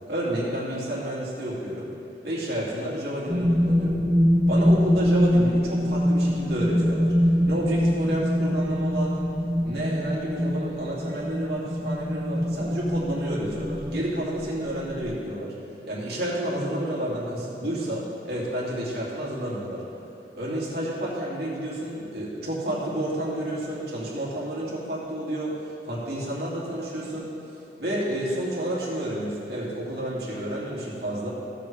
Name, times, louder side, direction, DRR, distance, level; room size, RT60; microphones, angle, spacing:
voice 1, 0.1-1.9 2.2-4.0 4.5-9.2 9.6-15.5 15.9-19.8 20.3-27.3 27.8-31.3, right 1 dB, 70° right, -6 dB, 2.7 m, -30 dB
sound 1, 3.3-15.1, equal, 20° right, 0.7 m, -24 dB
16.5 x 7.6 x 3.5 m, 2.7 s
head